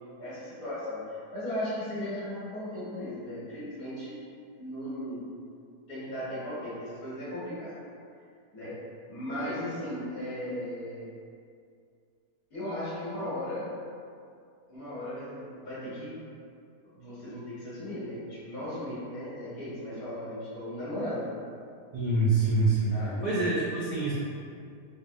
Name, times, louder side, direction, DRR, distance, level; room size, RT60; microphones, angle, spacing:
voice 1, 0.2-4.2 4.6-5.2 5.9-7.8 8.5-8.8 9.1-11.1 12.5-13.7 14.7-16.3 16.9-21.4 22.9-23.3, left 1 dB, 60° left, -10 dB, 1.5 m, -36 dB
voice 2, 21.9-22.9 23.2-24.1, right 3 dB, 65° right, -10 dB, 0.4 m, -25 dB
3.9 x 2.0 x 2.6 m, 2.4 s
omnidirectional pair, 1.7 m